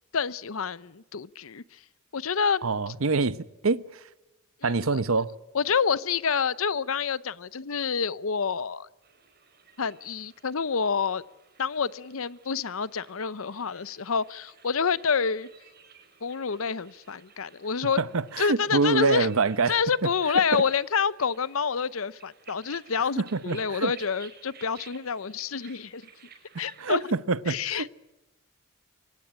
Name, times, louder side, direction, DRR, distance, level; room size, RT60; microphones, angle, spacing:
voice 1, 0.1-1.6 2.1-2.7 4.6-5.0 5.5-8.9 9.8-11.2 11.6-15.5 16.2-18.0 18.4-19.3 19.7-26.0 26.6-27.1 27.5-27.9, left 6 dB, 80° left, 0.8 m, -28 dB
voice 2, 2.6-3.8 4.6-5.3 18.0-19.7 20.5-20.6 23.2-23.9 26.5-27.9, right 3 dB, 80° right, 0.9 m, -26 dB
sound 1, 9.0-27.2, right 6 dB, 50° right, 5.0 m, -55 dB
24.5 x 18.5 x 10.0 m
head